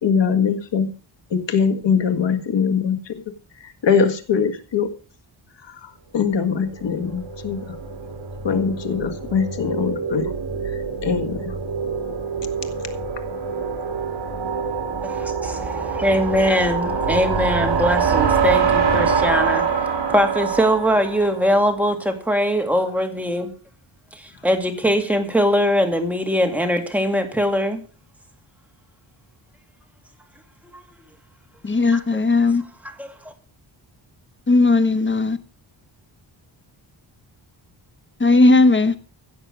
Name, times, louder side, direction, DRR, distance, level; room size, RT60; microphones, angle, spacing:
voice 1, 0.0-0.9 1.3-3.2 3.6-4.9 5.7-7.8 8.4-10.3 11.0-11.5, left 6 dB, 65° left, 1.9 m, -22 dB
sound 1, 6.5-21.7, right 6 dB, 60° right, 3.2 m, -25 dB
voice 2, 15.0-19.8 20.1-23.5 24.1-27.8 30.6-30.8 31.9-32.0 33.0-33.3, equal, 5° right, 2.1 m, -21 dB
voice 3, 31.6-32.6 34.5-35.4 38.2-38.9, left 3 dB, 25° left, 1.0 m, -16 dB
16.0 x 6.7 x 6.3 m
wide cardioid pair, 135°, 47 cm